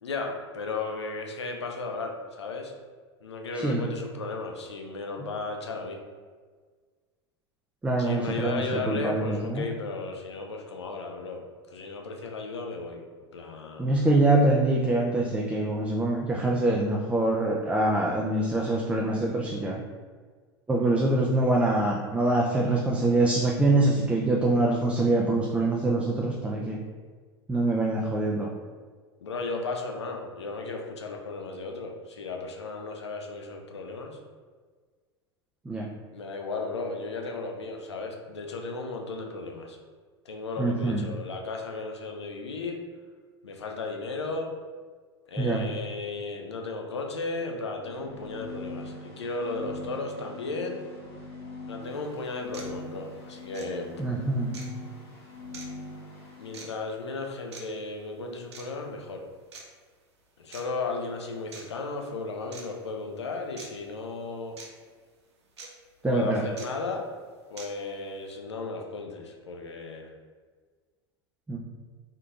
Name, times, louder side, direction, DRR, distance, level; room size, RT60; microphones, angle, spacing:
voice 1, 0.0-2.7 3.2-6.0 8.0-11.4 11.7-13.0 13.3-14.2 29.2-34.2 36.1-39.8 40.3-42.8 43.4-44.5 45.3-50.8 51.7-53.9 56.4-59.2 60.4-64.6 66.0-67.0 67.5-70.1, left 3 dB, 80° left, 3 dB, 0.5 m, -35 dB
voice 2, 7.8-9.7 13.8-19.8 20.7-26.8 27.5-28.5 35.7-35.9 40.6-41.0 45.4-45.6 54.0-54.5 66.0-66.4 71.5-71.6, right 2 dB, 10° right, -1 dB, 0.3 m, -24 dB
sound 1, 47.7-56.8, left 3 dB, 60° left, 1.1 m, -42 dB
sound 2, 51.8-51.9 52.5-52.7 53.5-53.7 54.5-54.7 55.5-55.7 56.5-56.7 57.5-57.6 58.5-58.7 59.5-59.6 60.5-60.6 61.5-61.7 62.5-62.6 63.6-63.7 64.6-64.7 65.6-65.7 66.6-66.7 67.6-67.7, right 4 dB, 80° right, 0.6 m, -43 dB
3.6 x 2.7 x 2.4 m, 1.5 s
hypercardioid pair, 85°, 14 cm